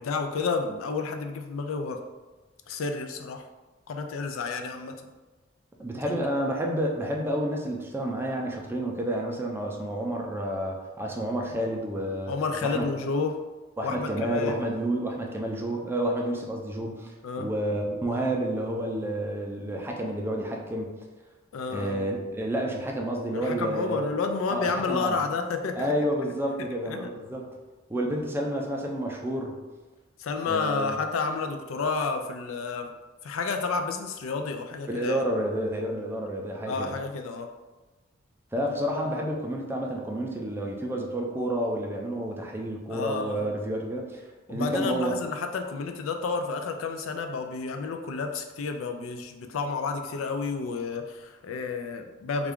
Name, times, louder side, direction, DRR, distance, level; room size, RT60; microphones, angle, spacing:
voice 1, 0.0-2.0 2.7-3.4 3.9-4.9 6.1-6.3 12.3-13.4 13.8-14.6 17.2-17.5 21.5-22.0 23.3-25.9 26.9-27.1 30.2-32.9 33.2-35.2 36.7-37.5 42.9-43.5 44.5-52.5, left 4 dB, 85° left, 5 dB, 0.4 m, -30 dB
voice 2, 5.8-12.3 12.6-12.9 13.8-20.9 21.7-24.1 24.5-25.2 25.8-27.4 27.9-29.6 30.4-31.0 34.9-37.0 38.5-44.2 44.5-45.1, right 1 dB, 10° right, 0 dB, 0.4 m, -30 dB
3.5 x 2.3 x 3.5 m, 1.2 s
head